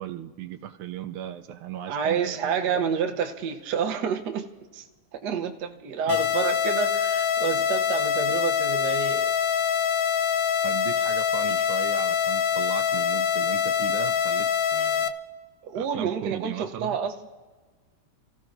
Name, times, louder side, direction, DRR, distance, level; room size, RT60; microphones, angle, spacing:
voice 1, 0.0-2.6 6.1-6.2 10.6-15.1 15.7-17.0, right 11 dB, 80° right, 1.5 m, -37 dB
voice 2, 1.9-4.8 5.2-9.3 15.6-17.1, right 7 dB, 60° right, 1.3 m, -29 dB
sound 1, 6.1-15.1, left 8 dB, 70° left, 1.3 m, -24 dB
30.0 x 15.5 x 2.6 m
omnidirectional pair, 2.4 m